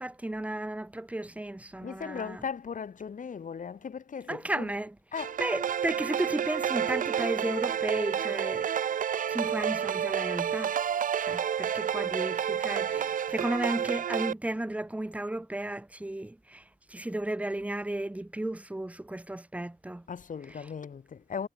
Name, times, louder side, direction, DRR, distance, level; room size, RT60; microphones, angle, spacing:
voice 1, 0.0-2.4 4.3-5.0 5.4-9.0 9.3-10.7 11.2-20.1 20.5-20.7, right 1 dB, 10° right, 0.9 m, -34 dB
voice 2, 1.8-4.7 5.1-5.4 20.1-21.5, left 6 dB, 65° left, 1.1 m, -38 dB
sound 1, 5.2-14.3, right 8 dB, 70° right, 0.4 m, -30 dB
wide cardioid pair, 130°, 14 cm